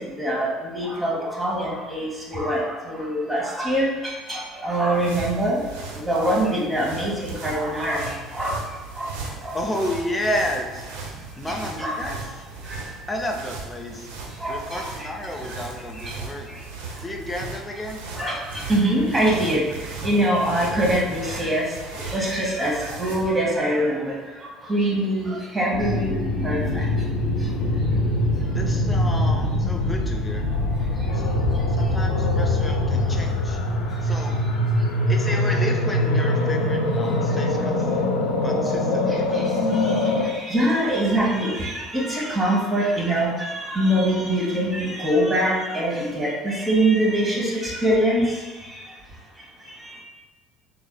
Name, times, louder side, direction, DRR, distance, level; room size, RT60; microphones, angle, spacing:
voice 1, 0.2-5.6 6.0-8.6 9.0-9.1 9.4-9.5 11.8-12.0 12.7-12.8 14.4-15.1 16.0-16.1 18.2-19.6 20.0-21.6 22.0-24.1 24.7-26.1 26.4-26.8 39.3-39.4 39.8-48.4 49.8-50.0, right 1 dB, 20° right, -4 dB, 1.2 m, -24 dB
sound 1, 4.6-23.4, right 3 dB, 80° right, 0.5 m, -37 dB
voice 2, 9.5-10.9 11.4-12.3 13.1-14.1 14.5-16.5 17.0-18.1 28.5-30.5 31.1-31.4 31.7-33.6 34.0-34.4 35.1-37.9 38.4-39.5, left 1 dB, 15° left, 2 dB, 0.6 m, -31 dB
sound 2, 25.7-40.2, left 1 dB, 80° left, 0.5 m, -23 dB
3.7 x 3.2 x 2.2 m, 1.3 s
hypercardioid pair, 70°, 0 cm